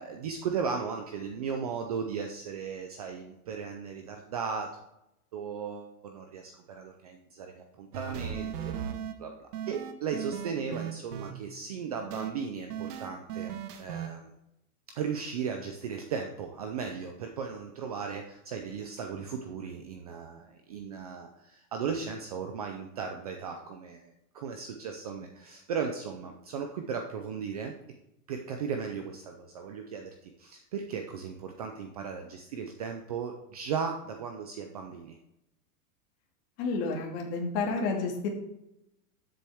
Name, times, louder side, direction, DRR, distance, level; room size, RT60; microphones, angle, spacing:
voice 1, 0.0-4.7 5.3-8.7 9.2-14.3 15.0-27.7 28.3-35.2, right 6 dB, 25° right, 4 dB, 0.4 m, -36 dB
sound 1, 7.9-9.1 9.5-11.3 12.1-12.3 12.7-14.1, right 9 dB, 80° right, 1.5 m, -36 dB
voice 2, 36.6-38.3, left 4 dB, 40° left, 2 dB, 2.1 m, -30 dB
13.0 x 7.6 x 3.5 m, 0.87 s
supercardioid pair, 170°, 46 cm